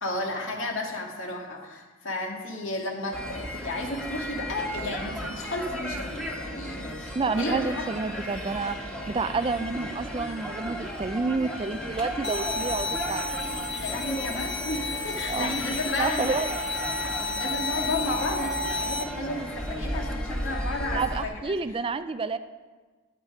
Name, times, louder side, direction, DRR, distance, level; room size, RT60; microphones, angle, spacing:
voice 1, 0.0-7.8 13.8-16.5 17.0-21.5, left 1 dB, 75° left, 0 dB, 2.0 m, -33 dB
sound 1, 3.1-21.2, equal, 5° left, 1.4 m, -35 dB
voice 2, 7.2-8.8 9.1-13.4 15.3-15.6 15.9-16.5 20.9-22.4, right 4 dB, 25° right, 11 dB, 0.4 m, -29 dB
sound 2, 12.2-19.0, left 2 dB, 55° left, 0.9 m, -32 dB
13.5 x 8.9 x 4.8 m, 1.3 s
head